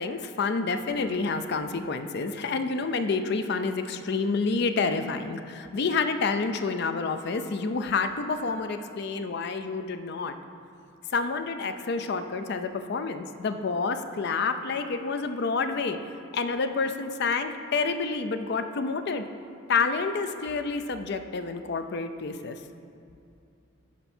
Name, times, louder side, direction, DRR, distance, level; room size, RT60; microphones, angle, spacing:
voice 1, 0.0-10.4 11.1-16.0 16.3-19.3 19.7-22.6, left 4 dB, 55° left, 8 dB, 0.4 m, -28 dB
11.0 x 4.5 x 4.3 m, 2.6 s
head